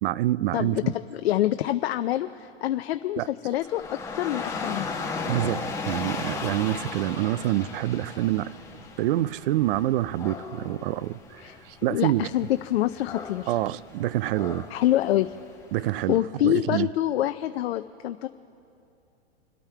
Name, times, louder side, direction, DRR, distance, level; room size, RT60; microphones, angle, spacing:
voice 1, 0.0-0.9 3.2-3.3 5.3-8.5 9.0-12.3 13.5-14.7 15.7-16.9, right 15 dB, 55° right, 0.5 m, -27 dB
voice 2, 1.1-4.9 11.4-11.6 11.9-13.6 14.7-15.3 16.1-18.3, left 13 dB, 70° left, 0.5 m, -26 dB
Dog / Rain, 3.6-15.7, left 4 dB, 10° left, 1.9 m, -36 dB
26.0 x 8.8 x 4.5 m
hypercardioid pair, 115°, 33 cm